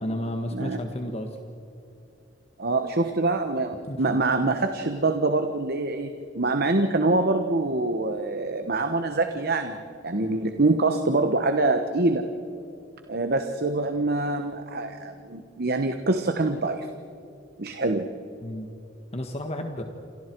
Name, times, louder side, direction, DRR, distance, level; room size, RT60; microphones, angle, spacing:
voice 1, 0.0-1.4 3.9-4.2 18.4-18.7 19.1-19.8, left 1 dB, 35° left, 5 dB, 1.5 m, -32 dB
voice 2, 2.6-12.2 13.1-16.9 17.6-18.1, right 2 dB, 55° right, 7 dB, 1.2 m, -25 dB
29.5 x 26.5 x 4.7 m, 2.8 s
head